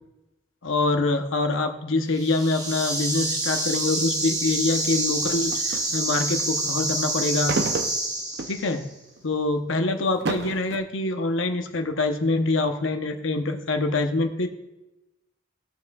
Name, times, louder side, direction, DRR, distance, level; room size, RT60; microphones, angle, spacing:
voice 1, 0.6-7.6 8.5-8.9 9.2-14.5, left 2 dB, 80° left, 6 dB, 0.8 m, -25 dB
sound 1, 2.1-8.8, right 2 dB, 20° right, 1.0 m, -27 dB
sound 2, 5.2-5.9 7.4-8.6 9.2-9.3 10.0-10.8, right 3 dB, 55° right, 0.6 m, -30 dB
16.5 x 6.0 x 2.3 m, 1.0 s
head